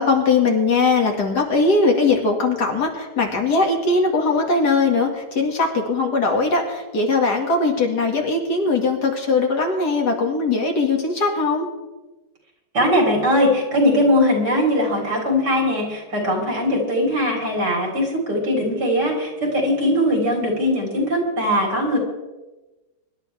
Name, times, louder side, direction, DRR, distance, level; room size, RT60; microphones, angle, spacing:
voice 1, 0.0-11.7, left 3 dB, 70° left, 1 dB, 2.8 m, -20 dB
voice 2, 12.7-22.0, left 1 dB, 75° right, -1 dB, 4.7 m, -20 dB
24.0 x 12.0 x 3.5 m, 1.1 s
omnidirectional pair, 1.8 m